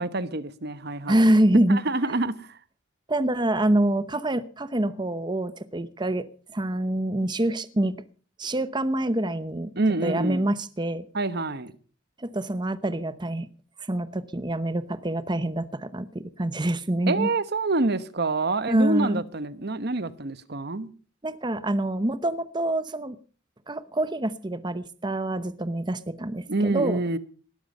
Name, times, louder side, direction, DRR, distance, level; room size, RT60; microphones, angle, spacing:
voice 1, 0.0-1.3 1.7-2.6 9.8-10.5 11.1-11.7 17.1-20.9 26.5-27.2, right 2 dB, 55° right, 1.1 m, -27 dB
voice 2, 1.1-1.8 3.1-6.2 6.5-7.9 8.4-9.7 10.0-11.0 12.2-13.5 13.9-17.3 18.7-19.2 21.2-23.2 23.7-27.0, right 1 dB, 25° right, 0.9 m, -26 dB
19.5 x 12.5 x 5.4 m
head